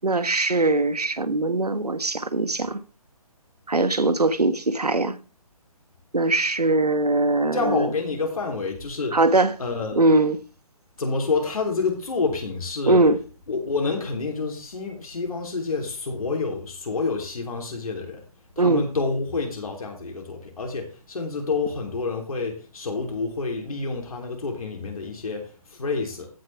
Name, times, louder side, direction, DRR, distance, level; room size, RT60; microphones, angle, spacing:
voice 1, 0.0-2.8 3.7-5.2 6.1-7.9 9.1-9.5 9.9-10.4 12.9-13.2 18.6-18.8, right 2 dB, 90° right, 1.2 m, -21 dB
voice 2, 7.5-9.2 9.6-10.1 11.0-13.0 13.5-18.2 18.5-26.3, left 4 dB, 65° left, 3.4 m, -28 dB
15.0 x 6.7 x 3.5 m
figure-of-eight pair, 145°, 19 cm